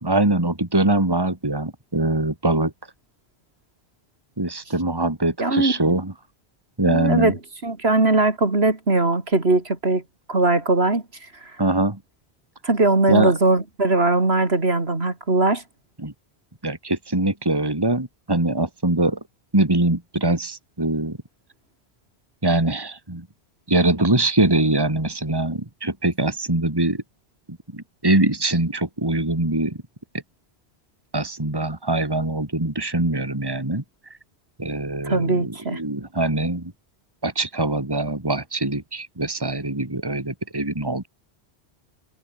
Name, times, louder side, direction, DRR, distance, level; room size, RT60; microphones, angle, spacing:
voice 1, 0.0-2.7 4.4-6.1 6.8-7.3 11.6-12.0 13.1-13.3 16.0-16.1 16.6-19.2 19.5-21.2 22.4-23.3 23.7-27.0 27.5-29.8 31.1-33.8 34.6-36.7 37.2-41.1, right 2 dB, 20° right, 2.5 m, -23 dB
voice 2, 5.4-5.7 6.8-10.0 10.3-11.0 12.6-15.6 35.0-35.8, right 2 dB, 70° right, 3.6 m, -20 dB
omnidirectional pair, 1.1 m